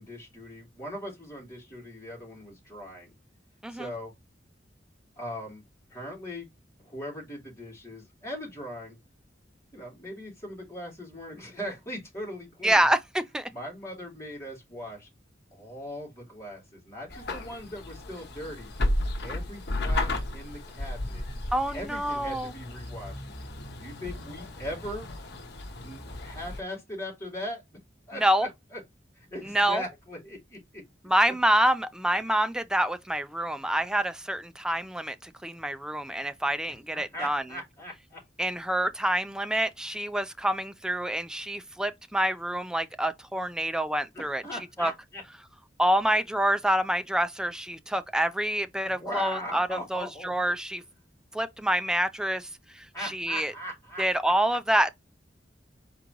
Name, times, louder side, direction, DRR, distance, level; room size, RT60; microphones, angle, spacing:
voice 1, 0.0-3.1 3.7-4.1 5.2-5.6 5.9-6.5 6.8-9.0 9.7-12.9 13.5-15.1 15.5-18.7 19.2-21.2 21.7-23.2 23.7-25.1 25.8-27.6 28.1-28.8 29.1-30.8 36.7-38.2 44.1-45.2 48.8-50.5 52.9-54.3, left 1 dB, 15° left, 2.9 m, -39 dB
voice 2, 12.6-13.5 21.5-22.5 28.2-28.5 29.4-29.8 31.0-37.4 38.4-44.4 44.8-44.9 45.8-50.8 51.3-52.5 52.7-53.5 54.0-54.9, right 1 dB, 5° right, 0.3 m, -27 dB
sound 1, 17.1-26.6, left 1 dB, 65° left, 1.0 m, -34 dB
4.7 x 3.8 x 3.0 m
head